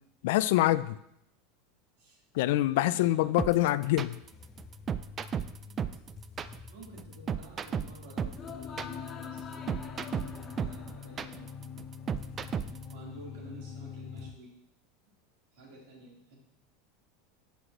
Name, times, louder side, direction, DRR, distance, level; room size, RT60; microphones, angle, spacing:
voice 1, 0.2-1.0 2.4-4.2, left 15 dB, 65° left, 16 dB, 0.3 m, -25 dB
voice 2, 2.6-3.4 5.6-5.8 6.7-11.5 12.9-14.5 15.5-16.4, right 1 dB, 70° right, -3 dB, 3.5 m, -51 dB
sound 1, 3.4-12.9, right 7 dB, 20° right, 0.3 m, -34 dB
sound 2, 4.2-14.3, left 6 dB, 20° left, 0.6 m, -44 dB
11.0 x 8.1 x 3.1 m, 0.78 s
supercardioid pair, 170°, 0 cm